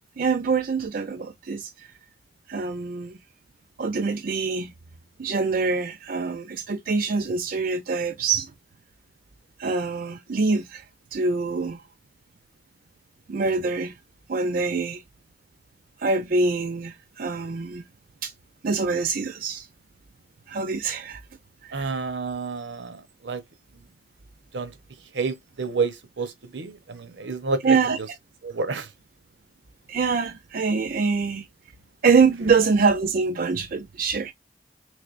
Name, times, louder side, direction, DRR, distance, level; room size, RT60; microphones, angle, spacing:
voice 1, 0.2-1.9 2.5-3.2 3.8-4.7 5.2-8.5 9.6-10.8 11.1-11.8 13.3-13.9 14.3-15.0 16.0-17.8 18.2-18.3 18.6-19.7 20.5-21.2 21.6-21.9 27.6-28.0 29.9-31.5 32.0-34.3, right 4 dB, 55° right, 0.5 m, -24 dB
voice 2, 21.7-23.4 24.5-24.7 25.1-27.8 28.4-28.9, right 4 dB, 80° right, 0.8 m, -29 dB
3.3 x 3.3 x 2.4 m
head